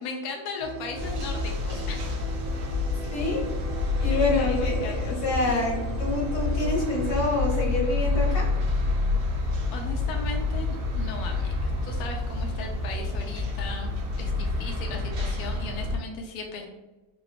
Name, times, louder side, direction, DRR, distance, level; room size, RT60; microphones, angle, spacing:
voice 1, 0.0-2.0 4.1-5.1 5.4-5.6 9.7-13.9 14.2-16.7, left 4 dB, 75° left, 1 dB, 0.9 m, -37 dB
sound 1, 0.6-7.2, left 2 dB, 80° right, 1.2 m, -38 dB
sound 2, 1.0-16.0, left 2 dB, 60° right, 0.9 m, -28 dB
voice 2, 3.1-3.4 4.0-8.5, left 2 dB, 60° left, -4 dB, 1.6 m, -27 dB
3.8 x 2.3 x 3.3 m, 1.1 s
omnidirectional pair, 2.1 m